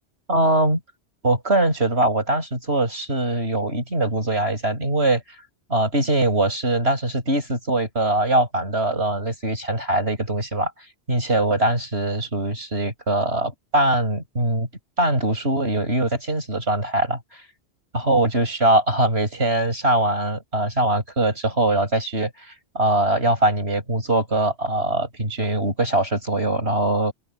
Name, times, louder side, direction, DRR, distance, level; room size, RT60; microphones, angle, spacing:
voice 1, 0.3-0.8 1.2-5.2 5.7-10.7 11.1-14.7 15.0-17.4 17.9-22.3 22.7-27.1, right 1 dB, 75° right, 8.3 m, -22 dB
open air
omnidirectional pair, 1.1 m